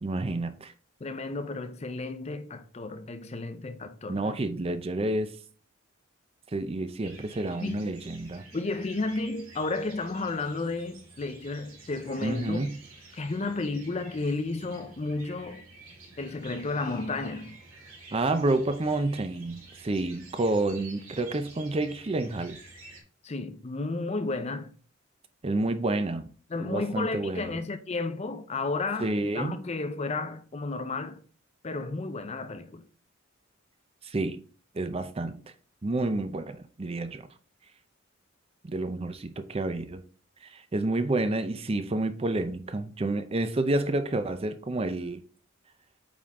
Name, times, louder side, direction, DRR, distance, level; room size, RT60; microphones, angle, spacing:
voice 1, 0.0-0.7 4.1-5.3 6.5-8.5 12.2-12.8 18.1-22.6 25.4-26.3 26.6-27.6 29.0-29.6 34.0-34.4 34.7-35.4 35.8-37.3 38.6-40.0 40.4-45.2, right 2 dB, 30° right, 0.5 m, -29 dB
voice 2, 1.0-4.2 7.6-7.9 8.5-12.7 13.1-15.6 16.2-17.6 23.2-24.7 26.5-31.2 31.6-32.8, left 3 dB, 30° left, 0.5 m, -32 dB
sound 1, 7.0-23.0, right 3 dB, 90° right, 2.5 m, -50 dB
8.6 x 3.8 x 3.6 m
head